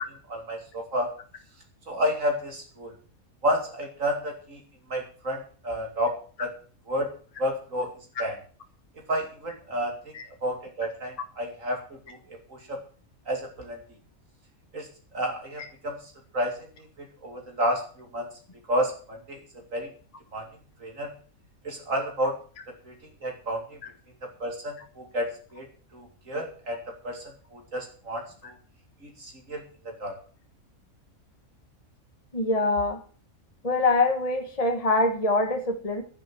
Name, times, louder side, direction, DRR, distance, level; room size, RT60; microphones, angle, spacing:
voice 1, 0.3-1.1 1.9-2.9 3.4-4.6 4.9-6.5 6.9-7.1 7.4-7.9 8.2-8.4 9.1-9.9 10.4-11.8 12.1-12.2 12.5-12.8 13.3-13.8 14.7-14.9 15.1-16.0 16.3-16.5 17.2-18.3 18.7-19.4 19.7-19.9 20.3-20.4 20.8-21.1 21.6-22.3 22.9-23.0 23.2-23.8 24.4-25.6 25.9-26.8 27.0-27.2 27.5-28.5 29.0-30.1, equal, 65° right, 2 dB, 3.0 m, -30 dB
voice 2, 32.3-33.0 33.6-36.0, left 2 dB, 25° left, 5 dB, 1.5 m, -24 dB
11.0 x 10.0 x 7.6 m, 0.42 s
omnidirectional pair, 1.5 m